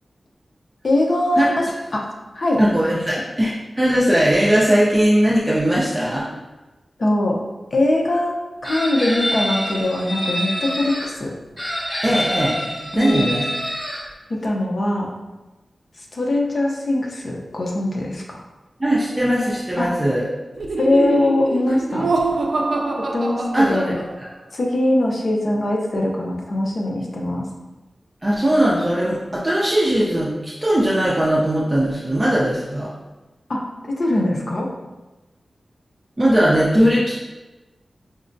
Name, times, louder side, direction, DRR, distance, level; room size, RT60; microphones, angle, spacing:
voice 1, 0.8-1.6 1.9-2.0 2.3-2.6 7.0-7.3 7.7-8.3 8.6-11.3 12.9-13.3 14.3-15.1 16.1-18.4 19.8-19.9 20.8-22.1 23.0-23.9 24.5-27.5 33.5-34.7, left 1 dB, 55° left, -1 dB, 0.6 m, -21 dB
voice 2, 2.6-6.3 12.0-13.4 18.8-20.3 23.5-24.0 28.2-32.9 36.2-37.1, equal, 20° right, -7 dB, 0.5 m, -19 dB
Chicken rooster, 8.6-11.1 11.6-14.0, equal, 20° left, 1.3 m, -26 dB
Laughter, 20.6-24.3, right 3 dB, 75° right, 0.4 m, -24 dB
4.9 x 2.1 x 2.5 m, 1.1 s
wide cardioid pair, 75°, 0 cm